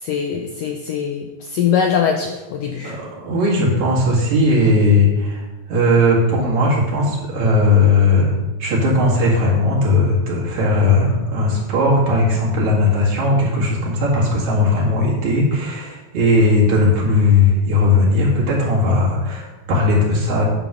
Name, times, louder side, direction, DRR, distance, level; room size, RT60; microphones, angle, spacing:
voice 1, 0.0-3.0, left 7 dB, 85° left, 3 dB, 1.4 m, -22 dB
voice 2, 2.8-8.3 8.6-20.4, left 2 dB, 70° right, -4 dB, 3.4 m, -17 dB
9.0 x 4.0 x 6.0 m, 1.1 s
omnidirectional pair, 3.5 m